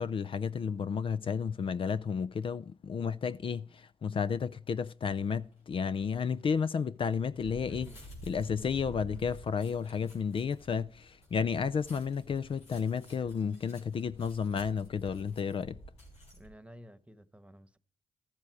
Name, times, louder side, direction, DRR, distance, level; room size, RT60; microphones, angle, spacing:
voice 1, 0.0-7.9 8.3-15.8, left 6 dB, 55° left, 0.5 m, -32 dB
sound 1, 5.0-5.4 5.9-16.5, right 1 dB, 85° left, 3.8 m, -51 dB
voice 2, 7.7-8.0 16.3-17.8, equal, 10° right, 1.2 m, -53 dB
13.0 x 7.4 x 4.7 m
supercardioid pair, 50°, 11 cm